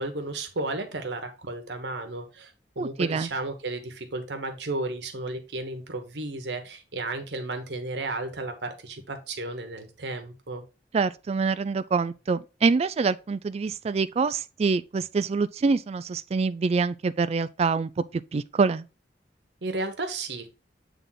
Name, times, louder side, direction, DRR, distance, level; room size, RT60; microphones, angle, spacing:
voice 1, 0.0-10.6 19.6-20.5, right 2 dB, 75° right, 1.1 m, -33 dB
voice 2, 2.8-3.3 10.9-18.8, right 4 dB, 35° right, 0.3 m, -25 dB
7.5 x 3.4 x 3.9 m
head